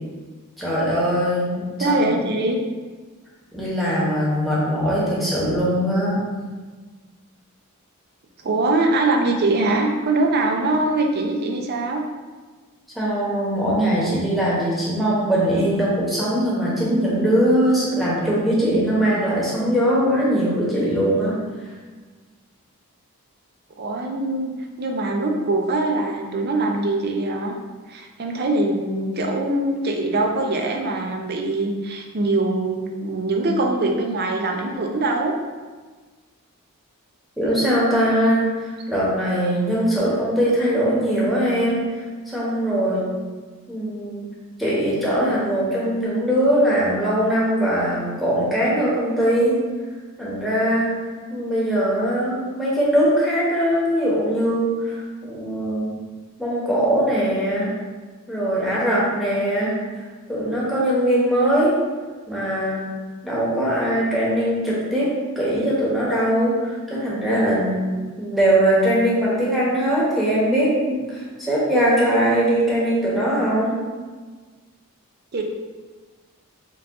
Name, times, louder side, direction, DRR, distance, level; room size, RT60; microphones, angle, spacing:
voice 1, 0.6-2.0 3.5-6.2 12.9-21.4 37.4-41.8 42.3-43.0 43.7-44.3 44.6-49.6 50.2-50.9 51.3-56.0 56.4-57.7 58.3-59.8 60.3-61.7 62.3-62.9 63.2-65.1 65.4-67.8 68.2-73.8, equal, ahead, -8 dB, 1.0 m, -21 dB
voice 2, 1.8-2.6 8.4-12.0 23.8-24.5 24.8-27.6 27.9-35.3 75.3-75.4, right 2 dB, 45° right, 2 dB, 0.5 m, -22 dB
4.7 x 2.5 x 3.6 m, 1.4 s
head